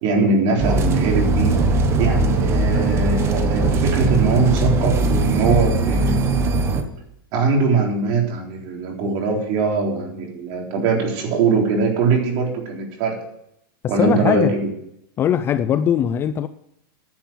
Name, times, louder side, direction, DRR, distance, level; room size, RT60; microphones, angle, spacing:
voice 1, 0.0-1.6 2.0-6.4 7.3-13.2 13.9-14.7, right 4 dB, 40° right, 3.8 m, -21 dB
sound 1, 0.6-6.8, right 2 dB, 20° right, 1.2 m, -19 dB
voice 2, 14.0-14.5 15.2-16.5, left 9 dB, 20° left, 0.4 m, -20 dB
10.5 x 7.5 x 7.5 m
supercardioid pair, 150°, 12 cm